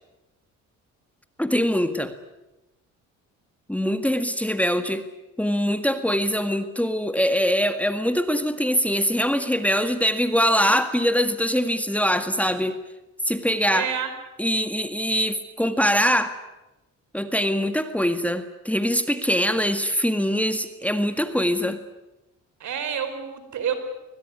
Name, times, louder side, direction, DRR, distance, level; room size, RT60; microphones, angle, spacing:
voice 1, 1.4-2.1 3.7-5.0 5.4-12.8 13.3-13.9 14.4-16.3 17.1-21.8, equal, 5° left, 10 dB, 1.9 m, -23 dB
voice 2, 13.7-14.1 22.6-23.8, right 8 dB, 70° right, 9 dB, 4.6 m, -28 dB
22.5 x 20.5 x 9.8 m, 0.98 s
cardioid pair, 90°, 30 cm